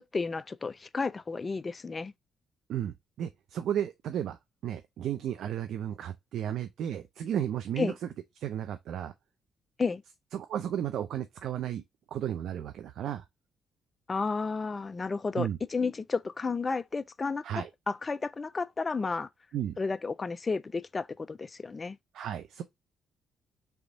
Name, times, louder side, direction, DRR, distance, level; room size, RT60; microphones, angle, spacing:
voice 1, 0.0-2.1 7.8-7.9 9.8-10.0 14.1-17.4 17.9-19.3 19.8-22.0, left 4 dB, 30° left, 0.4 m, -32 dB
voice 2, 2.7-8.1 8.4-9.1 10.3-11.8 12.1-13.2 15.3-15.6 17.4-17.7 19.5-19.8 22.1-22.6, right 10 dB, 75° right, 0.5 m, -34 dB
3.5 x 3.5 x 3.9 m
cardioid pair, 90°, 0 cm